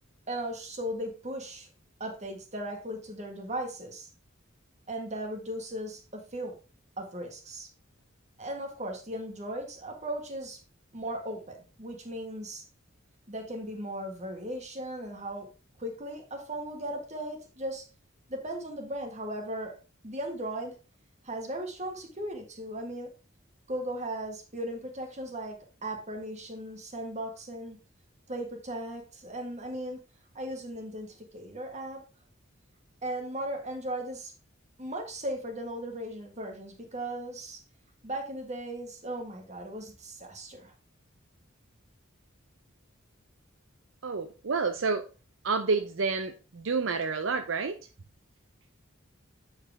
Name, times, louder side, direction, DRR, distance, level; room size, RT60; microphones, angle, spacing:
voice 1, 0.3-1.7 2.0-4.1 4.9-6.5 7.0-7.7 8.4-10.6 10.9-12.6 13.3-15.5 15.8-17.8 18.3-19.7 20.0-20.7 21.2-23.1 23.7-27.8 28.3-30.0 30.3-32.0 33.0-34.3 34.8-37.6 38.0-40.7, right 1 dB, 35° right, 1.7 m, -37 dB
voice 2, 44.0-45.1 45.4-47.8, right 4 dB, 70° right, 0.6 m, -29 dB
8.6 x 4.8 x 3.5 m
head